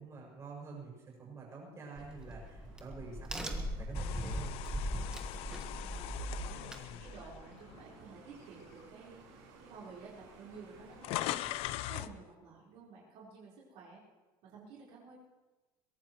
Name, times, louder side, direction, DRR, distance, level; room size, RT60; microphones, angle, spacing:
voice 1, 0.0-5.0, right 3 dB, 25° right, -3 dB, 6.5 m, -48 dB
Crack, 2.0-7.4, equal, 5° right, 1.5 m, -39 dB
sound 1, 2.0-11.6, right 5 dB, 85° right, 4.7 m, -59 dB
sound 2, 3.9-8.2 8.7-8.9 9.8-9.9 10.1-12.2, left 15 dB, 60° left, 0.5 m, -41 dB
voice 2, 5.8-14.0 14.4-15.1, right 5 dB, 65° right, -6 dB, 4.6 m, -53 dB
22.5 x 17.0 x 3.2 m, 1.2 s
cardioid pair, 150°, 11 cm